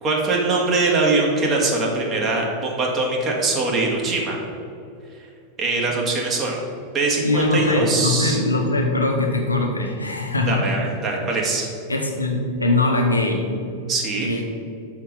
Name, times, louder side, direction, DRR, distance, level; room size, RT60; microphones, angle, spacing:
voice 1, 0.0-4.4 5.6-6.6 6.9-8.4 10.5-11.7 13.9-14.3, right 3 dB, 30° right, -1 dB, 1.8 m, -22 dB
voice 2, 7.2-10.7 11.2-11.3 11.9-13.5 14.2-14.4, left 2 dB, 80° left, 2 dB, 1.1 m, -21 dB
6.4 x 5.8 x 6.5 m, 2.5 s
figure-of-eight pair, 90°, 0 cm